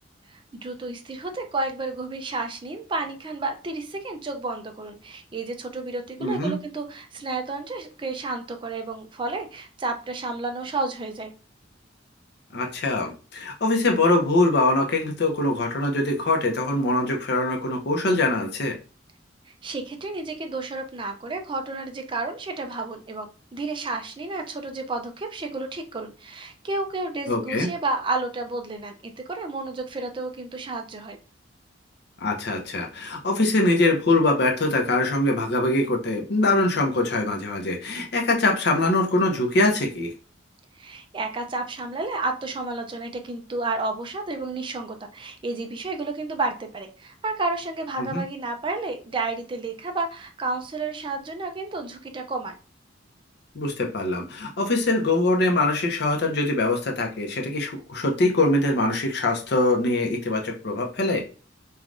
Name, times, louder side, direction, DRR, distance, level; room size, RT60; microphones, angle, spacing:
voice 1, 0.3-11.3 19.6-31.2 40.8-52.5, right 3 dB, 25° right, 5 dB, 0.4 m, -31 dB
voice 2, 6.2-6.6 12.5-18.8 27.3-27.7 32.2-40.1 48.0-48.2 53.5-61.2, left 2 dB, 60° left, 2 dB, 0.6 m, -23 dB
3.2 x 2.3 x 2.4 m, 0.36 s
head